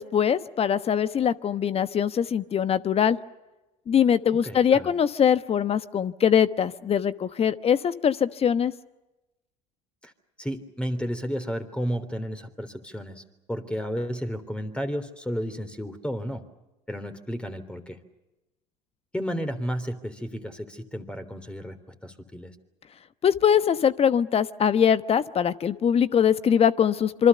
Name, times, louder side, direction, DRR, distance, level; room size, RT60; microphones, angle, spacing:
voice 1, 0.0-3.2 3.9-8.7 23.2-27.3, left 8 dB, 35° left, 14 dB, 1.2 m, -22 dB
voice 2, 4.4-4.9 10.0-10.1 10.4-13.2 13.5-16.4 16.9-18.0 19.1-21.8 22.0-22.5, equal, 5° left, 8 dB, 3.4 m, -32 dB
26.5 x 24.5 x 6.8 m, 1.0 s
hypercardioid pair, 75°, 17 cm